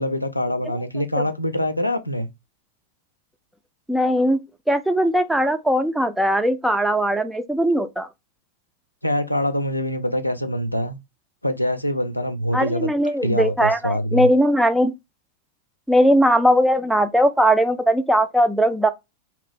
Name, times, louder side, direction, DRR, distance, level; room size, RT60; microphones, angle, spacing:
voice 1, 0.0-2.3 9.0-11.0 11.4-12.9 13.2-14.3, left 1 dB, 85° left, 0.4 m, -24 dB
voice 2, 3.9-4.4 4.7-8.1 12.5-14.9 15.9-18.9, equal, 5° right, 0.4 m, -19 dB
2.9 x 2.6 x 3.3 m
figure-of-eight pair, 90°, 0 cm